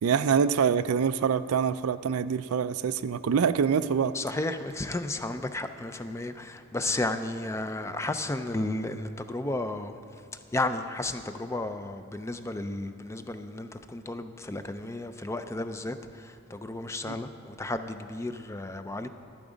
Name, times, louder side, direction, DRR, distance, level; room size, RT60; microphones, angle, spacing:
voice 1, 0.0-4.1, right 6 dB, 80° right, 13 dB, 0.4 m, -25 dB
voice 2, 4.1-10.0 10.3-19.1, left 2 dB, 15° left, 9 dB, 0.4 m, -33 dB
11.5 x 11.0 x 5.1 m, 3.0 s
head